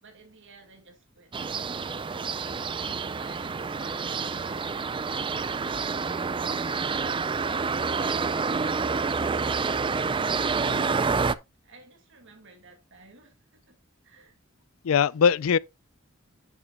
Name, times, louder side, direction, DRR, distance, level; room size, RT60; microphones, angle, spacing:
voice 1, 0.0-2.5 10.4-13.8 14.0-14.4, right 3 dB, 60° right, 2.1 m, -54 dB
sound 1, 1.3-11.4, right 4 dB, 25° right, 0.4 m, -28 dB
voice 2, 14.8-15.6, left 7 dB, 70° left, 0.4 m, -22 dB
11.0 x 7.0 x 2.3 m
head